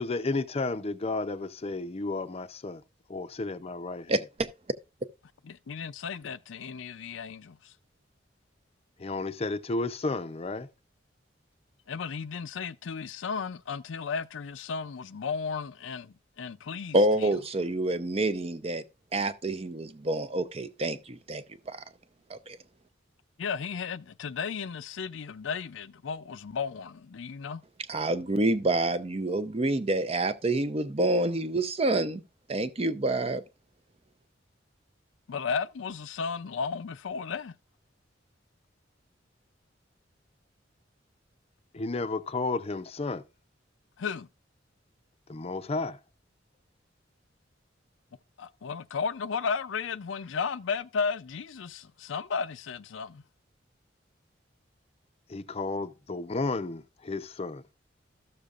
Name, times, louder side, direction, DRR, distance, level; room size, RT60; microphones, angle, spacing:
voice 1, 0.0-2.8 3.1-4.1 9.0-10.7 41.7-43.2 45.3-46.0 55.3-57.6, left 3 dB, 30° left, 0.5 m, -32 dB
voice 2, 4.1-4.5 16.9-18.8 19.1-21.8 22.3-22.6 27.9-32.2 32.5-33.4, right 2 dB, 30° right, 0.6 m, -27 dB
voice 3, 5.4-7.7 11.9-17.3 23.4-27.6 35.3-37.5 44.0-44.3 48.4-53.2, left 5 dB, 80° left, 0.5 m, -34 dB
14.0 x 6.7 x 2.4 m
head